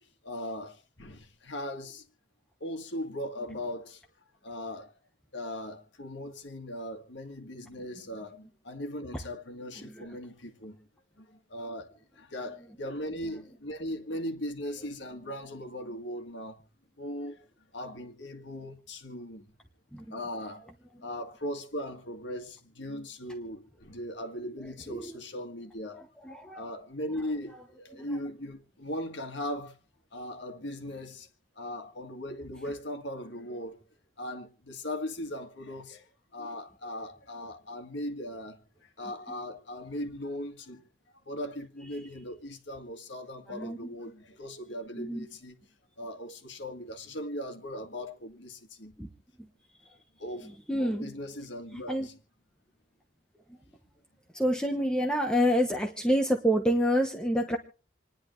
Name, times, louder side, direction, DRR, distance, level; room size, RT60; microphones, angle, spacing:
voice 1, 0.2-2.0 2.6-4.0 4.4-4.9 5.3-10.8 11.2-16.6 17.0-17.4 17.7-19.5 20.1-20.6 21.0-26.0 26.5-29.8 30.1-31.3 31.6-33.8 34.2-40.8 41.3-45.6 46.0-48.9 50.2-52.1, left 1 dB, 65° left, 1.8 m, -39 dB
voice 2, 9.8-10.2 19.9-20.2 24.9-25.1 26.0-26.6 27.9-28.0 43.5-43.9 45.0-45.3 49.0-49.1 50.4-51.1 51.7-52.1 54.3-57.6, equal, 5° left, 1.0 m, -28 dB
28.0 x 10.5 x 3.2 m
head